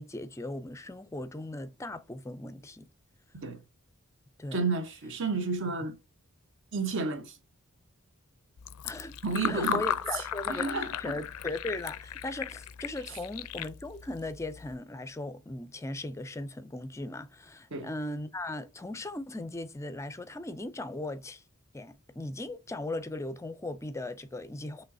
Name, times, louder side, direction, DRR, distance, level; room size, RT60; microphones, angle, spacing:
voice 1, 0.0-2.9 4.4-4.6 5.7-5.8 8.8-9.1 9.5-10.7 11.0-21.4 21.7-24.8, left 2 dB, 15° left, 0.4 m, -38 dB
voice 2, 4.5-6.0 6.7-7.4 9.2-9.8 10.1-10.2 10.5-11.2 17.7-17.9, right 4 dB, 55° right, 1.0 m, -31 dB
Fill (with liquid), 8.6-14.8, left 9 dB, 75° left, 0.4 m, -36 dB
5.3 x 3.2 x 2.7 m
head